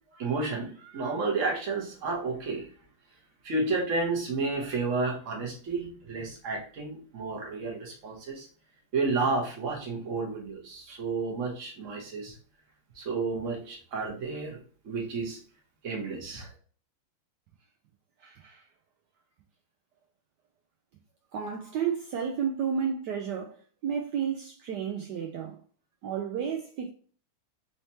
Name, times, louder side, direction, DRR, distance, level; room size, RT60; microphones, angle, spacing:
voice 1, 0.2-2.6 3.4-8.5 8.9-12.3 13.0-14.6 14.8-15.4 15.8-16.5, right 3 dB, 45° right, 1.2 m, -31 dB
voice 2, 18.2-18.7 21.3-23.6 23.8-25.6 26.0-26.9, right 7 dB, 85° right, 0.9 m, -32 dB
4.3 x 3.2 x 2.8 m
omnidirectional pair, 2.4 m